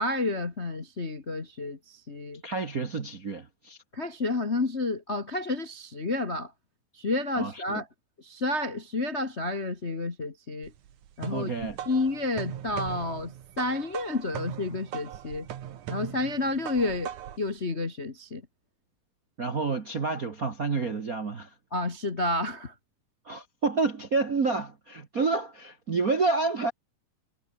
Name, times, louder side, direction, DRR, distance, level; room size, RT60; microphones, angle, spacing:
voice 1, 0.0-2.4 3.9-6.5 6.9-7.9 8.2-10.7 11.2-11.5 11.8-15.5 15.9-17.1 17.4-18.4 21.7-22.7, left 2 dB, 35° left, 1.0 m, -30 dB
voice 2, 2.4-3.8 7.3-7.8 11.3-11.8 19.4-21.5 23.2-26.7, right 4 dB, 45° right, 1.1 m, -29 dB
sound 1, 10.6-17.5, right 10 dB, 65° right, 3.0 m, -39 dB
omnidirectional pair, 3.9 m